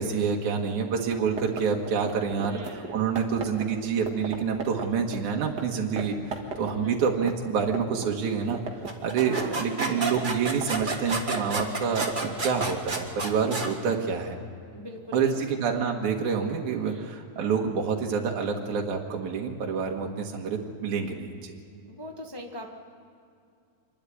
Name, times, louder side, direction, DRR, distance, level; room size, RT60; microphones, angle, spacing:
voice 1, 0.0-6.2 6.6-8.6 9.0-14.4 15.1-21.5, right 6 dB, 80° right, 0 dB, 2.9 m, -27 dB
sound 1, 1.0-5.6 6.0-6.1 6.3-8.1 8.3-13.1, right 4 dB, 40° right, 2.0 m, -36 dB
voice 2, 2.5-3.1 6.7-7.0 9.2-9.9 14.7-15.4 16.8-17.1 21.8-22.7, equal, 40° left, 1 dB, 0.3 m, -41 dB
sound 2, 8.9-13.7, right 3 dB, 25° right, 1.3 m, -31 dB
26.0 x 12.0 x 9.9 m, 2.4 s
omnidirectional pair, 3.4 m